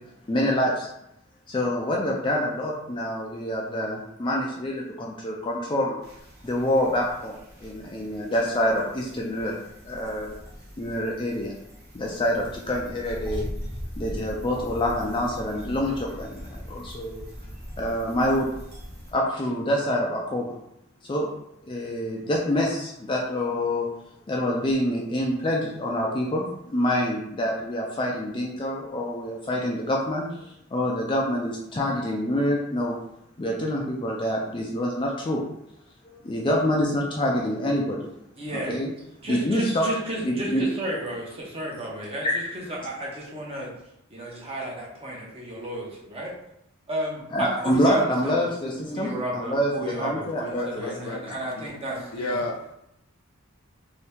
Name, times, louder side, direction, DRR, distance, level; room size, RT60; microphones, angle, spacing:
voice 1, 0.3-0.9 1.5-6.0 6.4-9.5 9.8-10.4 10.8-11.5 11.9-13.5 14.0-17.3 17.8-18.5 19.1-20.5 21.0-21.3 21.7-23.9 24.3-30.5 30.7-33.0 33.4-35.4 36.0-38.0 38.5-38.9 39.3-39.8 40.2-40.6 42.2-42.4 47.3-50.9 52.2-52.3, left 1 dB, 25° left, -2 dB, 0.4 m, -26 dB
sound 1, 6.0-19.1, equal, 45° right, 1.1 m, -40 dB
voice 2, 38.4-38.7 39.2-43.7 44.1-46.3 46.9-48.5 48.8-52.4, right 1 dB, 25° right, -3 dB, 0.8 m, -33 dB
voice 3, 50.5-51.7 52.1-52.7, left 2 dB, 90° left, 3 dB, 0.6 m, -33 dB
2.8 x 2.7 x 3.4 m, 0.80 s
head